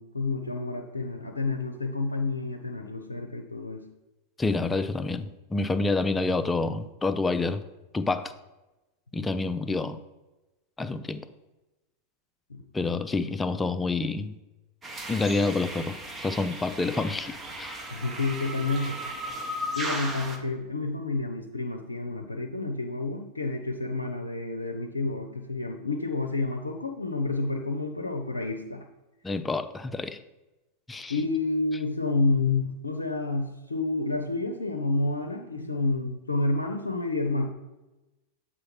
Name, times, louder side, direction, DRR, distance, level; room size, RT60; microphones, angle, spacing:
voice 1, 0.0-3.9 12.5-12.6 17.9-19.0 19.8-28.8 31.1-37.5, left 3 dB, 80° left, 4 dB, 0.5 m, -29 dB
voice 2, 4.4-7.6 7.9-8.3 9.1-10.0 10.8-11.2 12.7-14.3 15.1-17.8 29.2-30.2 30.9-31.2, left 3 dB, 10° left, 11 dB, 0.4 m, -28 dB
sound 1, 14.8-20.4, right 1 dB, 15° right, 0.9 m, -36 dB
7.5 x 4.1 x 4.6 m, 1.0 s
figure-of-eight pair, 90°, 0 cm